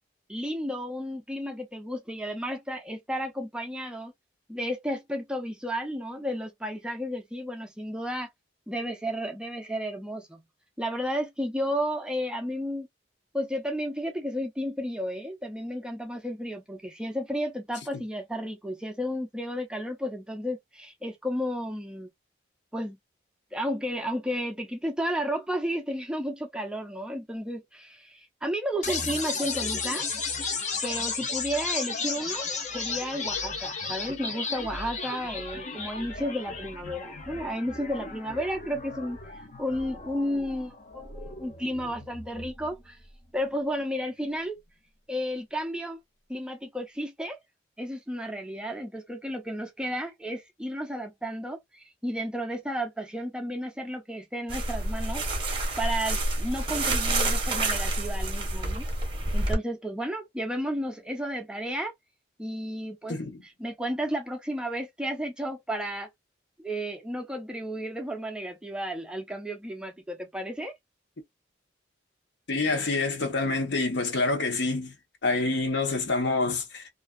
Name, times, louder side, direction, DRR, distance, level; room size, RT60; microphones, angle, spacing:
voice 1, 0.3-4.1 4.5-8.3 8.7-10.4 10.8-12.9 13.3-22.1 22.7-23.0 23.5-30.1 30.8-32.5 32.7-43.0 43.3-44.6 45.1-46.0 46.3-47.4 47.8-55.2 55.8-58.9 59.3-61.9 62.4-63.2 63.4-66.1 66.6-70.7, equal, 5° right, 0.4 m, -32 dB
sound 1, 28.8-42.8, left 4 dB, 40° left, 0.6 m, -34 dB
sound 2, 54.5-59.5, right 2 dB, 25° right, 0.8 m, -28 dB
voice 2, 63.1-63.4 72.5-74.9 75.2-76.9, left 3 dB, 70° left, 0.8 m, -27 dB
2.4 x 2.2 x 2.2 m
head